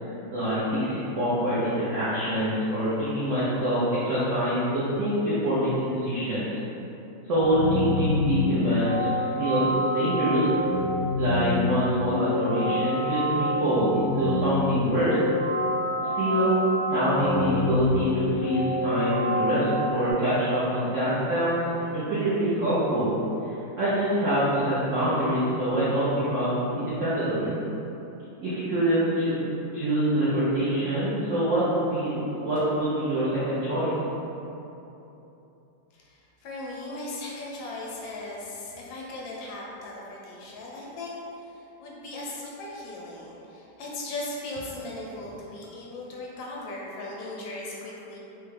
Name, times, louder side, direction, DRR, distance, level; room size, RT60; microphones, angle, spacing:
voice 1, 0.3-6.6 7.3-10.5 11.2-15.1 16.1-16.6 16.9-21.6 21.9-23.1 23.4-27.5 28.4-29.4 29.7-33.9, right 1 dB, 70° right, -12 dB, 0.7 m, -25 dB
sound 1, 7.3-20.1, left 1 dB, 55° right, 1.5 m, -27 dB
voice 2, 35.9-48.2, left 2 dB, 80° left, -4 dB, 1.3 m, -38 dB
3.5 x 2.2 x 3.2 m, 2.9 s
omnidirectional pair, 2.0 m